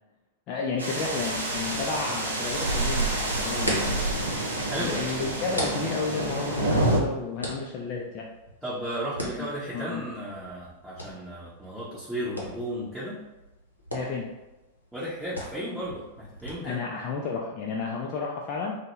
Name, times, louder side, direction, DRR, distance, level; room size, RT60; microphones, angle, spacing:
voice 1, 0.5-4.0 4.8-8.3 9.2-9.5 9.7-10.0 13.9-14.3 16.6-18.7, left 4 dB, 40° left, -1 dB, 0.3 m, -32 dB
sound 1, 0.8-7.0, right 2 dB, 75° right, 0.5 m, -28 dB
sound 2, 3.4-16.5, equal, 85° left, 0.6 m, -40 dB
voice 2, 4.7-5.0 8.6-13.2 14.9-16.8, right 1 dB, 5° right, -10 dB, 0.7 m, -34 dB
2.1 x 2.0 x 3.0 m, 1.0 s
figure-of-eight pair, 90°, 0 cm